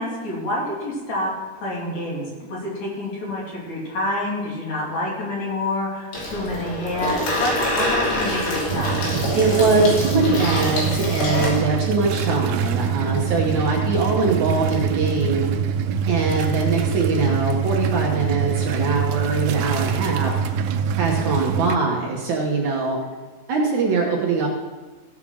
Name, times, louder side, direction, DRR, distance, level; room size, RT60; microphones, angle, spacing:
voice 1, 0.0-9.0, left 1 dB, 50° left, -5 dB, 3.9 m, -28 dB
Water tap faucet / Sink (filling or washing), 6.1-11.6, left 1 dB, 85° left, 4.9 m, -25 dB
sound 1, 8.7-21.8, right 7 dB, 85° right, 2.4 m, -24 dB
voice 2, 9.3-15.5 16.0-20.4 21.0-23.0 23.5-24.5, right 3 dB, 65° right, -2 dB, 2.3 m, -22 dB
15.5 x 5.8 x 6.3 m, 1.3 s
omnidirectional pair, 4.2 m